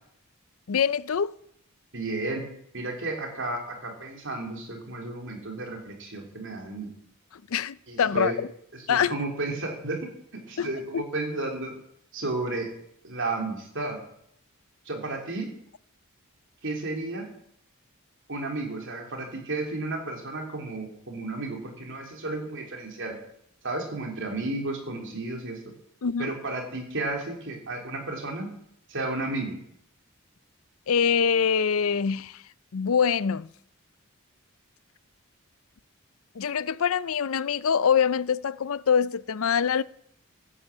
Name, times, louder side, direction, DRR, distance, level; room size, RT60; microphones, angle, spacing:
voice 1, 0.7-1.4 7.5-8.5 8.9-9.2 10.6-11.0 26.0-26.3 30.9-32.4 32.7-33.5 36.4-39.8, left 7 dB, 65° left, 0.5 m, -24 dB
voice 2, 1.9-2.4 2.7-6.9 7.9-8.4 8.7-11.7 12.1-12.7 13.0-14.0 14.9-15.5 16.6-17.3 18.3-23.2 23.6-25.6 26.2-28.5 28.9-29.6, right 2 dB, 55° right, 3.6 m, -33 dB
15.0 x 9.9 x 8.2 m
head